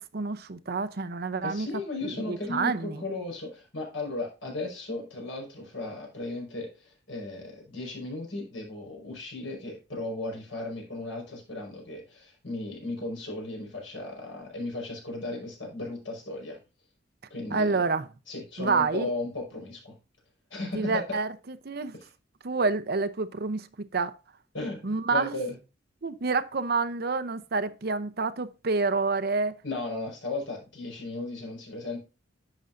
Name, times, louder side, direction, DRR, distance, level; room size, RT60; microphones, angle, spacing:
voice 1, 0.1-1.7 2.0-3.0 17.5-18.1 18.6-19.1 20.7-21.9 22.4-24.1 24.8-25.4 26.0-29.5, right 4 dB, 55° right, 0.7 m, -28 dB
voice 2, 1.4-16.6 17.3-17.8 18.3-20.0 20.5-21.0 21.9-22.1 24.5-25.6 29.6-32.0, left 2 dB, 85° left, 5.2 m, -36 dB
11.0 x 7.6 x 2.6 m
head